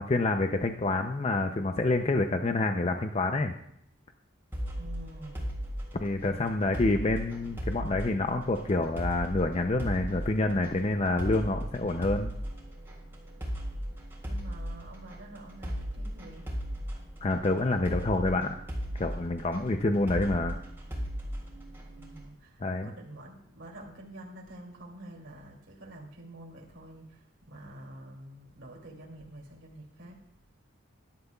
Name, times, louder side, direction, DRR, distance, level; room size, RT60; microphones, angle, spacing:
voice 1, 0.0-3.5 6.0-12.3 17.2-18.6 18.9-20.6 22.6-22.9, left 2 dB, 30° left, 6 dB, 0.5 m, -27 dB
sound 1, 4.5-22.3, equal, 10° right, 3.6 m, -37 dB
voice 2, 4.7-5.5 14.2-16.5 22.0-30.3, right 1 dB, 65° right, -2 dB, 2.8 m, -47 dB
17.5 x 11.5 x 2.3 m, 0.75 s
head